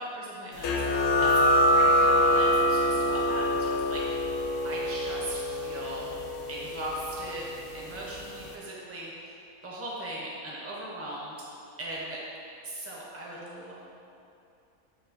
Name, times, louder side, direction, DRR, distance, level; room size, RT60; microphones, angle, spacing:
voice 1, 0.0-4.3 4.6-6.1 6.5-9.3 9.6-11.4 11.8-12.2 12.6-13.7, right 1 dB, 20° right, -5 dB, 0.3 m, -39 dB
sound 1, 0.6-7.9, left 1 dB, 65° left, 0.8 m, -25 dB
7.7 x 2.6 x 2.5 m, 2.7 s
omnidirectional pair, 1.4 m